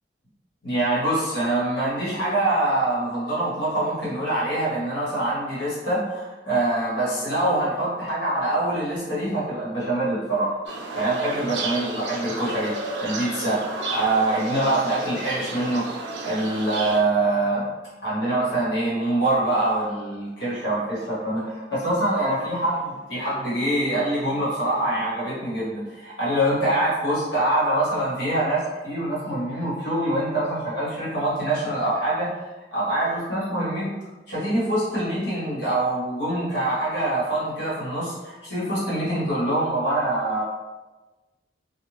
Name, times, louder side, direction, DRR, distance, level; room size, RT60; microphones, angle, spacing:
voice 1, 0.6-10.6 10.9-12.7 13.0-15.9 16.2-17.7 18.0-32.3 32.7-33.9 34.3-40.4, right 1 dB, 75° left, -8 dB, 1.3 m, -24 dB
sound 1, 10.7-17.0, right 3 dB, 70° right, 0.4 m, -32 dB
2.5 x 2.2 x 3.2 m, 1.2 s
head